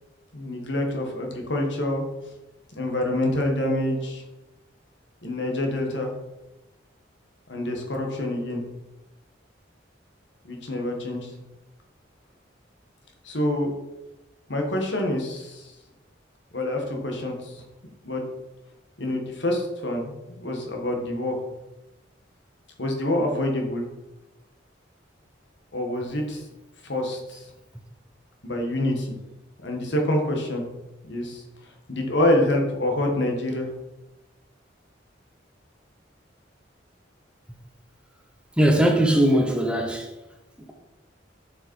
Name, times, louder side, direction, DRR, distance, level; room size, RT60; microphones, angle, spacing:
voice 1, 0.3-2.0 2.8-4.2 5.2-6.1 7.5-8.6 10.4-11.3 13.2-13.7 14.5-15.7 16.5-17.6 18.0-18.2 19.0-21.4 22.8-23.8 25.7-26.4 26.8-27.5 28.4-29.1 29.6-30.6 31.0-31.4 31.9-33.7, left 1 dB, 70° left, 1.7 m, -26 dB
voice 2, 38.6-40.1, right 1 dB, 5° right, 1.0 m, -20 dB
7.2 x 5.6 x 4.7 m
head